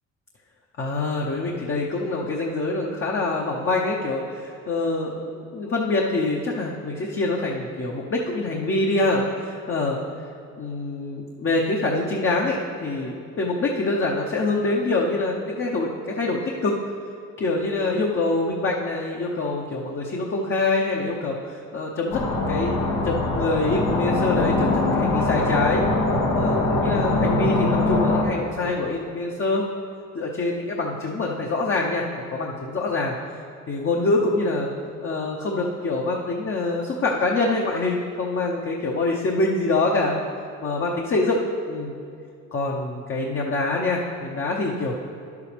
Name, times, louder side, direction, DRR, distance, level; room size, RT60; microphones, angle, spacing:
voice 1, 0.8-10.0 10.6-16.8 17.4-22.7 23.0-25.8 26.3-29.6 30.1-33.2 33.7-34.7 35.0-40.2 40.6-41.4 41.7-42.0 42.5-44.9, left 2 dB, 45° left, -2 dB, 0.9 m, -25 dB
sound 1, 22.1-28.2, left 2 dB, 80° left, 1.2 m, -22 dB
10.5 x 8.3 x 3.4 m, 2.5 s
cardioid pair, 90°, 30 cm